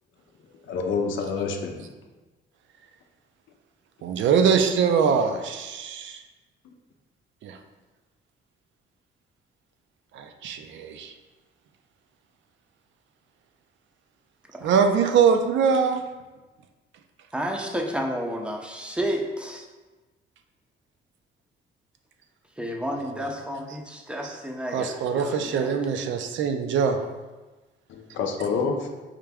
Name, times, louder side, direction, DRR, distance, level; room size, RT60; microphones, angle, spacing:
voice 1, 0.7-1.8 27.9-28.9, left 5 dB, 75° left, 3 dB, 0.5 m, -27 dB
voice 2, 4.0-6.2 7.4-7.6 10.1-11.1 14.6-16.0 24.7-27.0, right 6 dB, 70° right, 6 dB, 0.4 m, -23 dB
voice 3, 17.3-19.7 22.6-25.7, equal, 5° right, 1 dB, 0.5 m, -31 dB
4.8 x 2.2 x 3.4 m, 1.2 s
cardioid pair, 90°, 20 cm